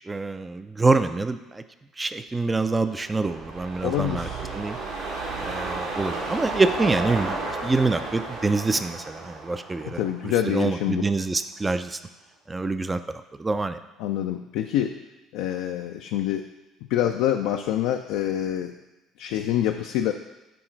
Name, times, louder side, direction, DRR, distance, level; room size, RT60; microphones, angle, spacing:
voice 1, 0.1-1.6 2.0-4.8 5.4-12.0 12.5-13.8, right 3 dB, 20° right, 11 dB, 0.4 m, -26 dB
sound 1, 2.7-11.2 11.5-11.6, right 3 dB, 60° right, 1.3 m, -33 dB
voice 2, 3.8-4.5 9.9-11.0 14.0-15.0 15.3-16.5 16.9-18.7 19.2-20.1, left 11 dB, 65° left, 5 dB, 0.3 m, -26 dB
7.7 x 3.8 x 4.4 m, 1.0 s
figure-of-eight pair, 55°, 0 cm